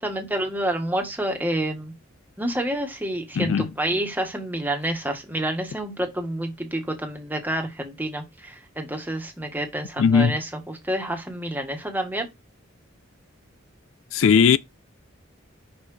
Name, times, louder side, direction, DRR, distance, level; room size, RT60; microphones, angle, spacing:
voice 1, 0.0-1.9 2.4-12.3, right 1 dB, 10° right, 1.4 m, -28 dB
voice 2, 3.4-3.7 10.0-10.4 14.1-14.6, left 6 dB, 70° left, 0.4 m, -18 dB
5.9 x 5.6 x 3.2 m
head